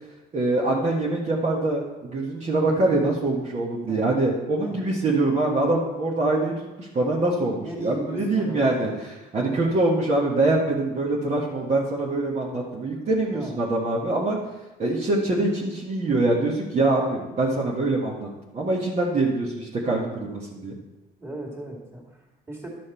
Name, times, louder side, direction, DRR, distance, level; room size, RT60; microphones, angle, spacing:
voice 1, 0.3-6.5 6.8-8.9 9.3-14.4 14.8-20.7, right 2 dB, 40° right, -4 dB, 1.6 m, -24 dB
voice 2, 7.6-8.9 9.5-9.8 13.3-13.5 21.2-22.7, right 2 dB, 15° right, -1 dB, 2.5 m, -37 dB
11.5 x 6.3 x 4.4 m, 1.1 s
cardioid pair, 110°, 17 cm